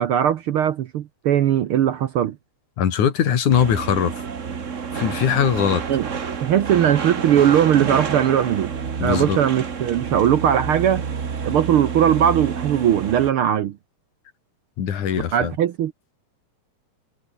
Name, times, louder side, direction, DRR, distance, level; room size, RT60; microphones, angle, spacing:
voice 1, 0.0-2.4 5.9-6.1 6.4-8.7 9.0-11.0 11.4-13.8 15.3-15.9, right 10 dB, 65° right, 1.4 m, -19 dB
voice 2, 2.8-4.1 4.9-5.8 9.0-9.4 14.8-15.5, left 8 dB, 90° left, 3.8 m, -21 dB
sound 1, 3.5-13.3, right 6 dB, 40° right, 1.1 m, -29 dB
omnidirectional pair, 3.3 m